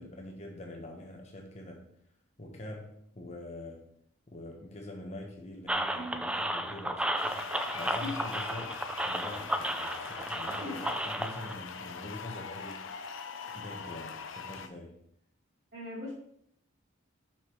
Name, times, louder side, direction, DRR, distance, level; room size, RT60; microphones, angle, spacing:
voice 1, 0.0-1.8 2.4-3.9 4.3-8.8 9.0-12.9 13.5-14.9, left 1 dB, 35° left, 1 dB, 1.1 m, -44 dB
sound 1, 5.7-11.5, right 1 dB, 5° right, 0.3 m, -33 dB
sound 2, 7.2-14.7, left 6 dB, 80° left, 0.6 m, -42 dB
voice 2, 15.7-16.1, left 2 dB, 50° right, -10 dB, 2.9 m, -39 dB
5.9 x 5.1 x 4.6 m, 0.70 s
head